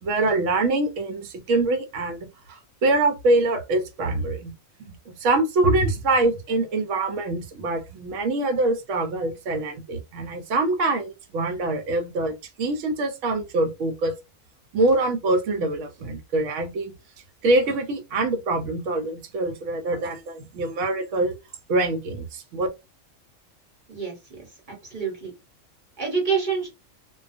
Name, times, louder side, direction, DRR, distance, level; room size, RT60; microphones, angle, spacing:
voice 1, 0.0-2.2 2.5-4.5 4.8-14.1 14.7-16.9 17.4-21.4 21.7-22.7, right 2 dB, 70° right, 0.9 m, -24 dB
voice 2, 23.9-25.3 26.0-26.7, right 5 dB, 40° right, 1.0 m, -28 dB
2.3 x 2.3 x 2.4 m
omnidirectional pair, 1.5 m